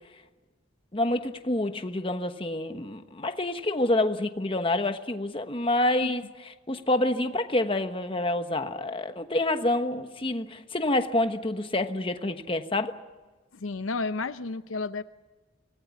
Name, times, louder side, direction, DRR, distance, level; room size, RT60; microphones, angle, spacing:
voice 1, 0.9-6.2 6.7-12.9, left 1 dB, 25° left, 8 dB, 1.2 m, -27 dB
voice 2, 13.5-15.0, left 3 dB, 85° left, 12 dB, 0.8 m, -32 dB
25.0 x 19.0 x 8.3 m, 1.2 s
head